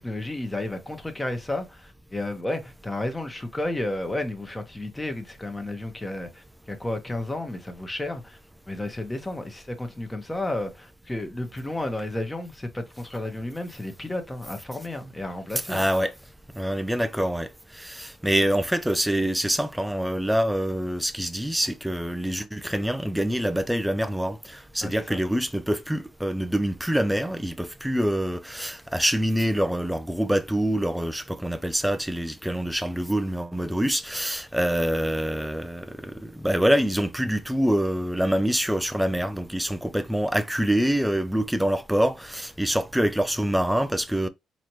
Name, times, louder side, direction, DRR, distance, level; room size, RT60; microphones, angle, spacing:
voice 1, 0.0-8.4 8.7-15.9 24.8-25.2, left 1 dB, 15° left, 1.1 m, -32 dB
voice 2, 15.7-16.1 16.5-44.3, equal, 5° right, 0.4 m, -25 dB
4.2 x 2.9 x 3.0 m
cardioid pair, 90°, 0 cm